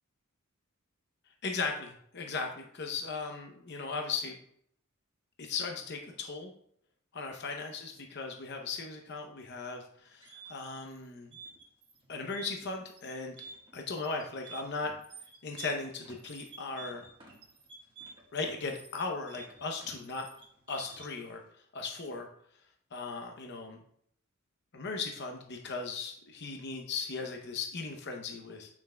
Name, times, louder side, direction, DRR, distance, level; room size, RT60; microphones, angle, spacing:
voice 1, 1.4-4.4 5.4-6.5 7.1-11.4 12.1-13.4 13.7-14.9 15.4-17.0 18.3-20.3 20.7-21.4 21.7-22.3 22.9-23.8 24.7-28.7, left 4 dB, 55° left, 3 dB, 0.7 m, -37 dB
sound 1, 10.1-21.3, right 3 dB, 25° right, 1.4 m, -50 dB
9.0 x 5.8 x 2.2 m, 0.68 s
head